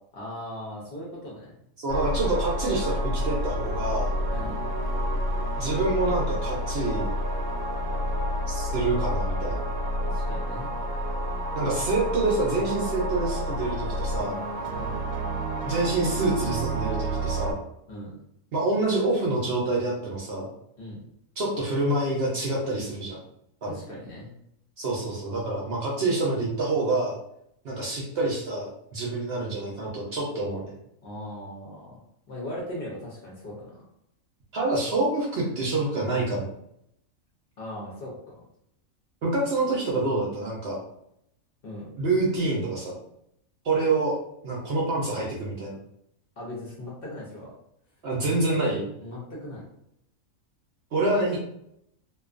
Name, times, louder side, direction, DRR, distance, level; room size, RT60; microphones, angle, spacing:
voice 1, 0.1-1.5 4.3-4.6 10.0-10.7 14.7-15.1 17.9-18.1 20.8-21.0 23.7-24.4 31.0-32.0 32.3-33.9 37.6-38.4 41.6-41.9 46.4-47.5 49.0-49.6, left 1 dB, 55° left, -4 dB, 0.7 m, -39 dB
voice 2, 1.8-4.1 5.6-7.1 8.5-9.6 11.6-14.4 15.6-17.6 18.5-20.5 21.4-23.2 23.6-23.7 24.8-27.2 27.6-30.7 34.5-36.5 39.2-40.8 42.0-43.0 43.6-44.2 44.4-45.8 48.0-48.9 50.9-51.5, right 2 dB, 60° right, -4 dB, 0.7 m, -27 dB
sound 1, 1.9-17.5, equal, 85° right, 1.0 m, -29 dB
2.4 x 2.3 x 2.4 m, 0.76 s
omnidirectional pair, 1.4 m